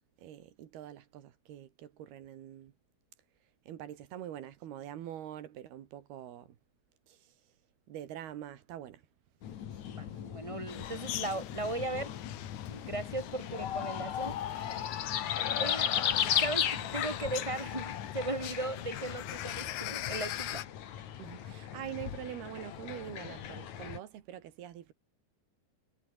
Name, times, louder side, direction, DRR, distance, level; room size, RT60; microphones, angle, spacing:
voice 1, 0.2-2.7 3.7-6.5 7.1-7.2 7.9-9.0 21.2-24.9, right 11 dB, 90° right, 3.9 m, -44 dB
sound 1, 9.4-24.0, left 10 dB, 55° left, 2.8 m, -36 dB
voice 2, 9.9-12.2 12.7-14.3 15.5-20.6, right 2 dB, 10° right, 5.4 m, -37 dB
sound 2, 10.7-20.6, left 13 dB, 90° left, 3.4 m, -42 dB
omnidirectional pair, 4.4 m